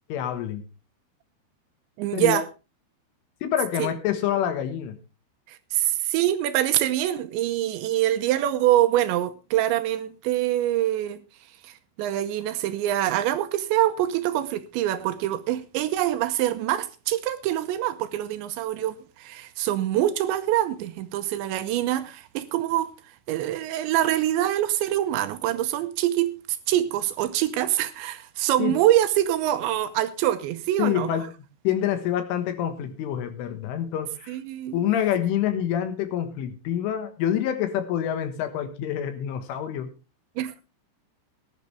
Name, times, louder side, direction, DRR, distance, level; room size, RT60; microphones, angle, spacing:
voice 1, 0.1-0.6 2.1-2.4 3.4-5.0 28.6-28.8 30.8-31.3 31.7-34.4 34.7-39.9, left 10 dB, 80° left, 3.9 m, -27 dB
voice 2, 2.0-2.5 3.8-3.9 5.5-11.2 11.6-22.9 23.3-31.1 34.3-34.8 40.4-40.5, right 13 dB, 80° right, 2.9 m, -25 dB
18.0 x 11.0 x 3.3 m
omnidirectional pair, 5.7 m